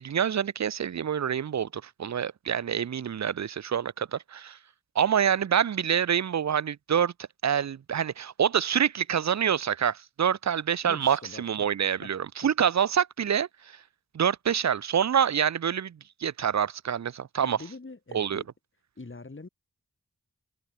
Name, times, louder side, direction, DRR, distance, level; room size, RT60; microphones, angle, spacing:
voice 1, 0.0-4.6 4.9-7.1 7.4-13.8 14.1-17.6 18.1-18.4, right 8 dB, 60° right, 0.7 m, -26 dB
voice 2, 10.8-12.1 12.4-12.5 17.4-18.5 19.0-19.5, left 3 dB, 40° left, 5.3 m, -44 dB
cardioid pair, 50°, 31 cm